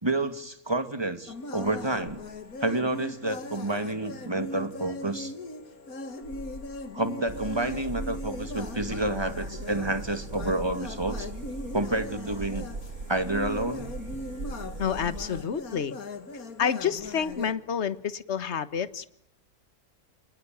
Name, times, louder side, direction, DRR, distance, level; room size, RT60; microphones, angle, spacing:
voice 1, 0.0-2.2 2.6-5.3 6.9-11.3 11.7-12.7 13.1-13.9, right 2 dB, 15° right, 9 dB, 2.2 m, -29 dB
sound 1, 1.3-17.5, left 2 dB, 75° left, 2.5 m, -39 dB
sound 2, 7.3-15.4, right 3 dB, 55° right, 2.7 m, -39 dB
voice 2, 14.8-16.0 16.6-19.1, left 7 dB, 50° left, 14 dB, 1.6 m, -29 dB
28.5 x 19.5 x 9.4 m, 0.76 s
omnidirectional pair, 1.5 m